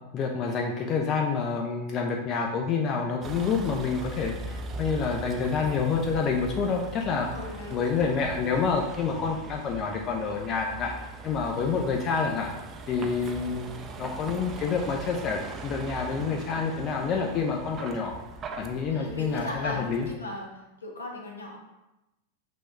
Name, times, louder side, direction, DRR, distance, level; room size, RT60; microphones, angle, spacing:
voice 1, 0.1-7.3 7.7-10.9 11.2-12.5 12.9-18.1 18.6-20.1, left 5 dB, 35° left, 1 dB, 0.4 m, -28 dB
Vehicle, 3.2-20.2, right 3 dB, 25° right, 0.4 m, -40 dB
voice 2, 7.3-7.8 18.9-20.5 20.8-21.6, left 1 dB, 75° left, 0 dB, 0.8 m, -37 dB
6.0 x 2.4 x 3.1 m, 0.96 s
figure-of-eight pair, 90°, 0 cm